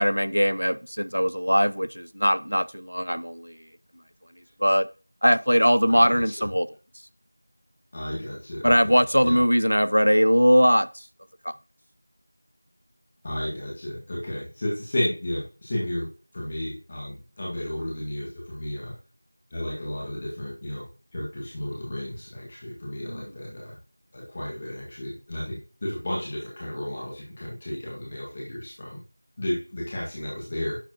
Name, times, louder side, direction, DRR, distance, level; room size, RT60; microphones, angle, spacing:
voice 1, 0.0-3.5 4.6-4.9 5.2-6.7 8.6-10.9 11.5-11.6 23.0-23.3, equal, 90° right, 0.4 m, -21 dB
voice 2, 5.9-6.4 7.9-9.4 13.2-18.9 19.5-20.9 21.1-23.8 24.1-29.0 29.4-30.8, left 1 dB, 15° left, 1.7 m, -33 dB
10.5 x 6.9 x 2.9 m
figure-of-eight pair, 175°, 0 cm